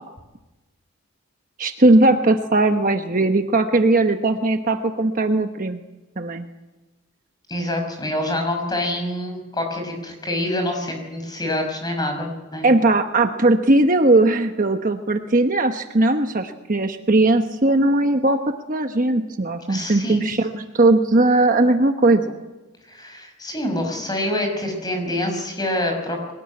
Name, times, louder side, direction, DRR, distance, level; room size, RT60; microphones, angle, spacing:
voice 1, 1.6-5.8 6.2-6.5 12.6-18.4 18.7-22.4, right 2 dB, 40° right, 6 dB, 1.1 m, -18 dB
voice 2, 7.5-12.7 19.7-20.2 22.9-26.3, left 1 dB, 20° left, 3 dB, 5.9 m, -26 dB
22.5 x 18.5 x 9.7 m, 1.1 s
head